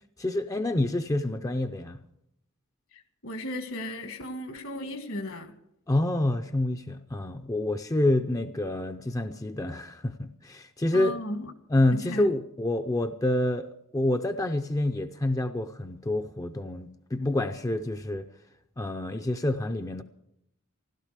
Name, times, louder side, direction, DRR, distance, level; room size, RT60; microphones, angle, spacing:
voice 1, 0.2-2.0 5.9-11.2 11.7-18.3 18.8-20.0, left 1 dB, 15° left, 0.5 m, -27 dB
voice 2, 2.9-5.5 10.9-11.5 11.9-12.3, left 1 dB, 65° left, 1.7 m, -35 dB
15.5 x 12.0 x 6.6 m
head